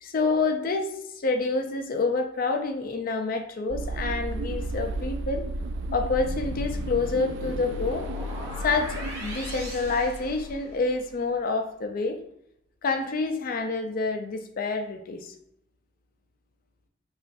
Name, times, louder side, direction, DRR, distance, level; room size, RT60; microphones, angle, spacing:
voice 1, 0.0-5.5 5.9-8.1 8.6-12.2 12.8-15.3, left 3 dB, 50° left, 5 dB, 0.4 m, -28 dB
sound 1, 3.7-11.1, right 1 dB, 75° right, 0.3 m, -33 dB
sound 2, 6.2-11.0, right 1 dB, 20° right, 1.4 m, -40 dB
5.3 x 2.4 x 2.6 m, 0.75 s
head